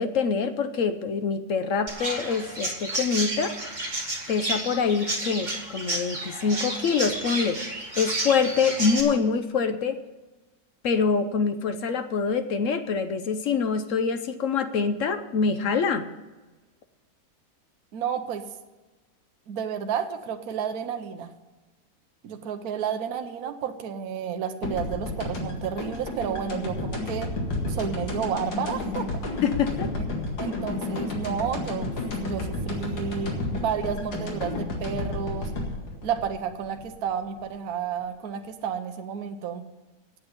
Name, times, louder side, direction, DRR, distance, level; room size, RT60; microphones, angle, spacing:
voice 1, 0.0-3.6 4.3-7.6 8.0-10.0 10.8-16.1 29.4-29.9, left 5 dB, 60° left, 9 dB, 0.9 m, -25 dB
Chirp tweet, 1.9-9.0, right 2 dB, 25° right, 2.0 m, -31 dB
voice 2, 17.9-18.4 19.5-21.3 22.2-27.3 27.7-29.1 30.0-31.9 32.2-35.5 36.0-39.6, right 7 dB, 60° right, 6 dB, 1.2 m, -31 dB
sound 1, 24.6-37.4, left 2 dB, 90° left, 2.7 m, -31 dB
8.7 x 8.3 x 9.4 m, 1.2 s
omnidirectional pair, 1.9 m